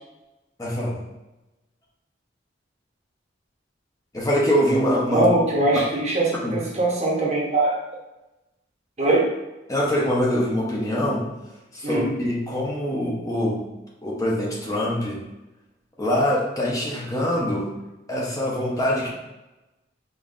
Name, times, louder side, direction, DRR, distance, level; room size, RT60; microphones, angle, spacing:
voice 1, 0.6-1.0 4.1-5.3 6.4-6.6 9.7-11.3 11.7-13.6 14.0-15.2 16.0-17.7 18.1-19.1, equal, 20° left, -4 dB, 0.8 m, -24 dB
voice 2, 5.1-7.8 9.0-9.3 11.8-12.1, right 2 dB, 35° right, -3 dB, 0.9 m, -21 dB
5.3 x 2.6 x 2.5 m, 1.0 s
head